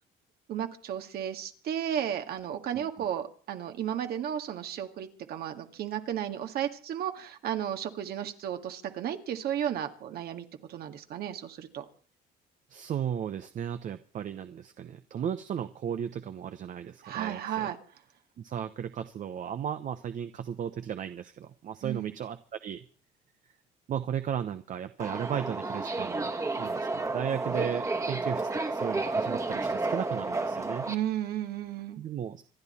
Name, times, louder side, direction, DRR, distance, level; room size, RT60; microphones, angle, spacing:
voice 1, 0.5-11.8 17.0-17.8 21.8-22.1 30.9-32.0, right 10 dB, 65° right, 6 dB, 1.9 m, -34 dB
voice 2, 2.7-3.1 12.7-17.7 18.4-22.8 23.9-30.9 32.0-32.5, right 9 dB, 50° right, 9 dB, 0.9 m, -35 dB
Subway metro underground, 25.0-30.9, right 3 dB, 20° right, 1.6 m, -31 dB
26.5 x 11.0 x 4.4 m, 0.41 s
cardioid pair, 110°, 17 cm